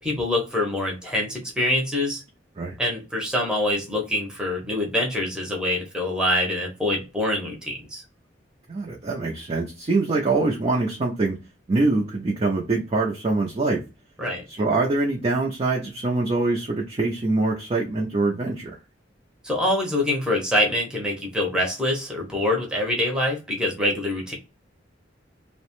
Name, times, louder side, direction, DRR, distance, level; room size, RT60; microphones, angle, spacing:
voice 1, 0.0-2.2 2.8-8.0 14.2-14.4 19.4-24.3, left 1 dB, 5° right, -1 dB, 0.8 m, -25 dB
voice 2, 8.7-11.4 11.7-13.8 14.6-18.7, right 3 dB, 30° right, -1 dB, 0.5 m, -24 dB
2.9 x 2.1 x 2.9 m, 0.30 s
head